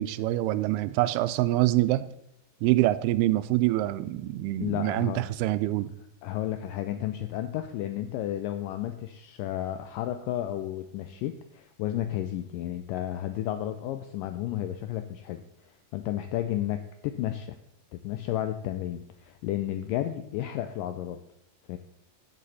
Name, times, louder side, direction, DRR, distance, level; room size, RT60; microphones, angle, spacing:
voice 1, 0.0-2.1 2.6-5.9, right 16 dB, 90° right, 14 dB, 2.6 m, -25 dB
voice 2, 4.6-5.2 6.2-17.6 17.9-21.2 21.7-21.8, left 12 dB, 90° left, 9 dB, 1.9 m, -32 dB
14.5 x 7.5 x 4.2 m, 0.78 s
omnidirectional pair, 4.4 m